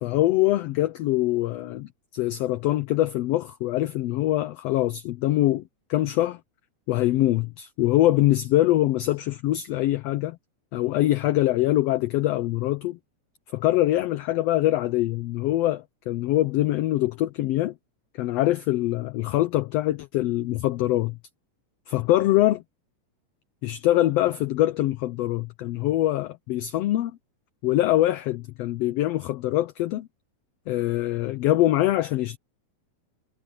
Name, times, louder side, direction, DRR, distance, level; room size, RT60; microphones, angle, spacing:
voice 1, 0.0-5.6 5.9-6.4 6.9-10.4 10.7-13.0 13.5-17.7 18.2-21.2 21.9-22.6 23.6-27.1 27.6-30.1 30.7-32.4, left 15 dB, 75° left, 1.6 m, -23 dB
omnidirectional pair, 3.3 m